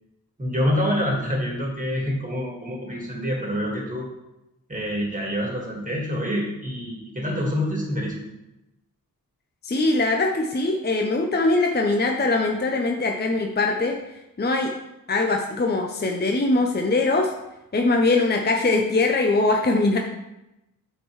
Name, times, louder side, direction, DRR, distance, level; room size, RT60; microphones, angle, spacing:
voice 1, 0.4-4.1 4.7-8.3, equal, 25° right, -2 dB, 1.7 m, -26 dB
voice 2, 9.6-14.0 14.4-14.7 15.1-17.3 17.7-20.0, left 2 dB, 30° left, 2 dB, 0.5 m, -22 dB
7.9 x 4.4 x 3.1 m, 0.93 s
wide cardioid pair, 85°, 35 cm